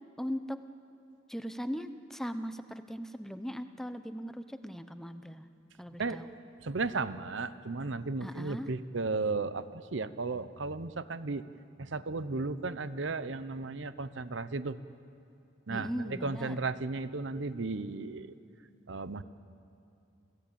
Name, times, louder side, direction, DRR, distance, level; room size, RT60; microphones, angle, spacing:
voice 1, 0.2-0.6 1.3-5.5 5.8-6.3 8.2-8.7 15.7-16.5, equal, ahead, 9 dB, 0.7 m, -39 dB
voice 2, 6.6-11.4 11.8-14.8 15.7-18.3 18.9-19.2, right 3 dB, 70° right, 13 dB, 0.8 m, -34 dB
28.0 x 16.5 x 8.8 m, 2.7 s
head